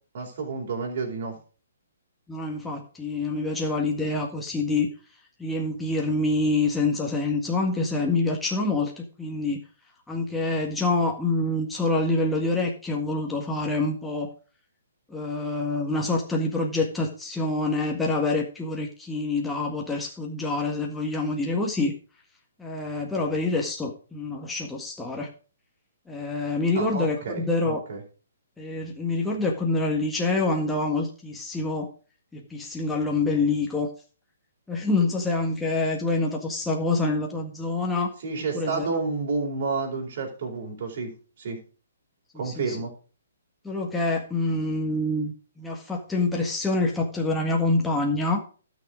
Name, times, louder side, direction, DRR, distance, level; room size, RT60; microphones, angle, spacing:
voice 1, 0.1-1.4 26.7-28.0 38.2-41.6 42.3-42.9, right 4 dB, 50° right, 0 dB, 4.1 m, -30 dB
voice 2, 2.3-4.9 5.4-9.6 10.1-14.3 15.1-21.9 22.6-25.3 26.1-27.8 28.6-31.9 32.3-33.9 34.7-38.1 38.5-38.9 42.3-42.8 43.6-48.4, left 2 dB, 5° left, -1 dB, 1.7 m, -26 dB
12.5 x 6.4 x 5.0 m, 0.37 s
figure-of-eight pair, 135°, 0 cm